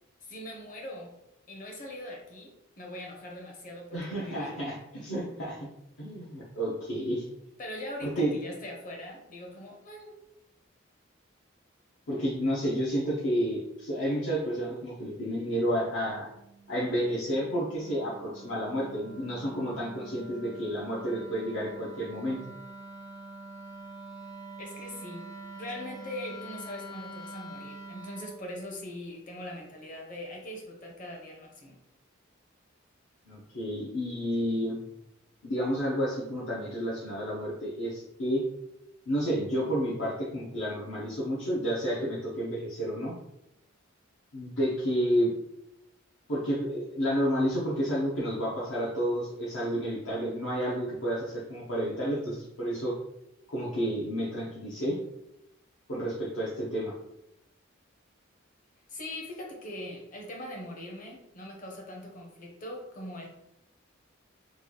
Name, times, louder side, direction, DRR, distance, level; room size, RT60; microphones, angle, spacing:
voice 1, 0.2-1.1 1.5-4.6 7.6-10.1 24.6-31.8 58.9-63.3, left 1 dB, 40° left, 0 dB, 0.8 m, -41 dB
voice 2, 3.9-5.7 6.0-7.2 8.0-8.3 12.1-16.3 16.7-22.4 33.3-34.8 35.4-38.4 39.1-43.1 44.3-45.3 46.3-52.9 53.5-55.0 55.9-56.9, equal, 75° left, -7 dB, 0.8 m, -30 dB
Wind instrument woodwind instrument, 15.5-28.4, right 2 dB, 20° left, 0.4 m, -46 dB
3.1 x 2.3 x 3.9 m, 0.84 s
head